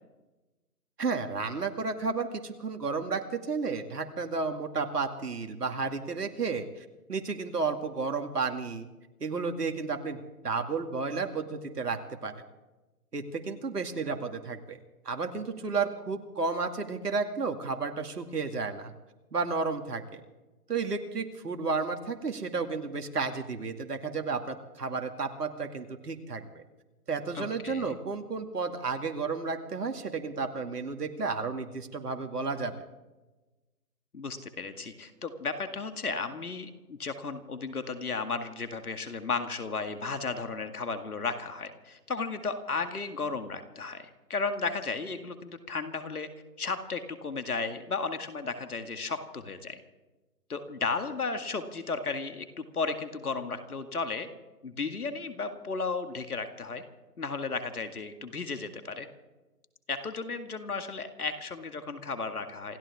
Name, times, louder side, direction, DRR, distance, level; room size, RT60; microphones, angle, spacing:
voice 1, 1.0-6.7 7.1-8.9 9.2-10.2 10.4-12.3 13.1-14.8 15.1-18.9 19.3-20.2 20.7-26.6 27.1-32.8, right 4 dB, 75° right, 5 dB, 2.4 m, -32 dB
voice 2, 27.3-28.0 34.1-46.3 46.6-49.8 50.5-54.3 54.6-56.8 57.2-59.1 59.9-62.8, left 4 dB, 65° left, 7 dB, 2.1 m, -34 dB
28.0 x 14.0 x 3.6 m, 1.1 s
hypercardioid pair, 180°, 48 cm